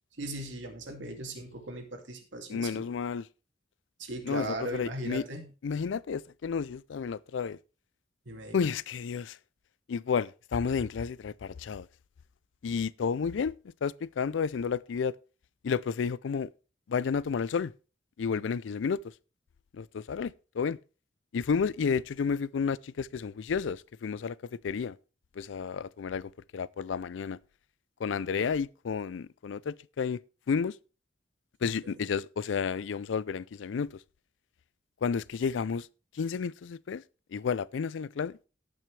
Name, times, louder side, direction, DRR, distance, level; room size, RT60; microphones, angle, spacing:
voice 1, 0.2-2.8 4.0-5.5 8.3-8.6 31.6-31.9, right 1 dB, 85° right, 2.4 m, -38 dB
voice 2, 2.5-3.3 4.2-5.3 5.6-7.6 8.5-9.4 9.9-11.9 12.6-13.5 13.8-15.1 15.6-16.5 16.9-17.7 18.2-19.0 19.7-20.8 21.3-24.4 24.6-25.0 25.4-27.4 28.0-30.2 30.5-30.8 31.6-33.9 35.0-35.9 36.1-37.0 37.3-38.4, left 6 dB, 90° left, 0.4 m, -31 dB
17.5 x 6.1 x 3.3 m
head